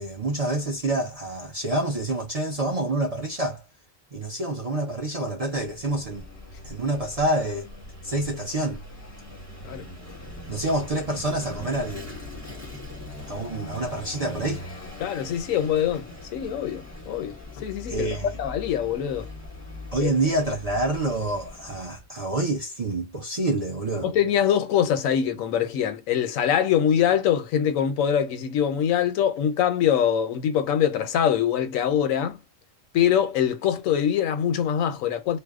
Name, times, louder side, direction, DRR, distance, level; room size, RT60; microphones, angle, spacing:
voice 1, 0.0-3.6 4.1-6.3 6.6-7.7 8.0-8.8 10.5-12.2 13.3-14.6 17.9-18.4 19.9-24.1, right 2 dB, 45° right, 0.5 m, -27 dB
Vehicle / Engine, 5.5-22.1, left 1 dB, 15° right, 0.9 m, -41 dB
voice 2, 15.0-18.1 18.4-19.3 20.0-20.1 24.0-32.4 32.9-35.4, left 9 dB, 85° left, 1.0 m, -23 dB
2.6 x 2.0 x 2.3 m
omnidirectional pair, 1.3 m